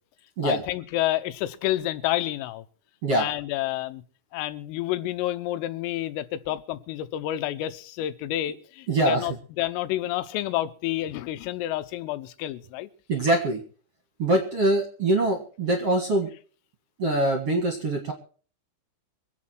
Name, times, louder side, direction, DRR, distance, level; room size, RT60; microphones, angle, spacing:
voice 1, 0.4-2.6 3.2-4.0 4.3-12.9, left 14 dB, 85° left, 3.6 m, -29 dB
voice 2, 8.9-9.2 13.1-13.6 14.2-16.3 17.0-18.1, right 2 dB, 55° right, 1.7 m, -23 dB
25.5 x 8.7 x 4.5 m
omnidirectional pair, 5.8 m